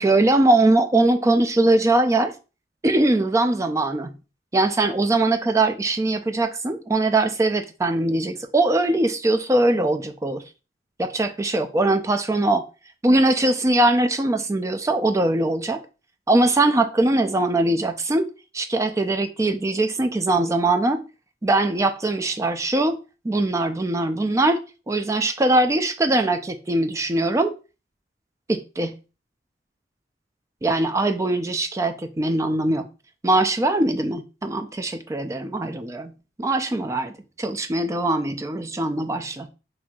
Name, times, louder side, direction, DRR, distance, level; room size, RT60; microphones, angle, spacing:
voice 1, 0.0-2.3 2.8-4.1 4.5-10.4 11.0-12.6 13.0-15.8 16.3-18.3 18.5-21.0 21.4-23.0 23.2-24.6 24.9-27.5 28.5-28.9 30.6-32.9 33.2-36.1 36.4-39.5, right 2 dB, 15° right, 0.4 m, -21 dB
5.9 x 2.7 x 2.3 m
head